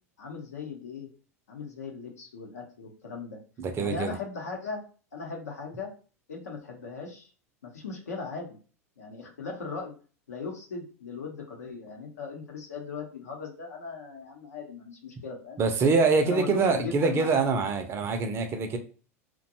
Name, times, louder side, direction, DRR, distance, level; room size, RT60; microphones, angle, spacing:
voice 1, 0.2-1.1 1.5-3.4 3.8-4.8 5.1-5.9 6.3-7.3 7.6-8.5 9.0-9.9 10.3-15.6 16.2-17.4, left 5 dB, 80° left, 1 dB, 0.7 m, -38 dB
voice 2, 3.6-4.2 15.6-18.8, right 4 dB, 30° right, 7 dB, 0.5 m, -25 dB
2.6 x 2.2 x 2.7 m, 0.38 s
hypercardioid pair, 90°, 8 cm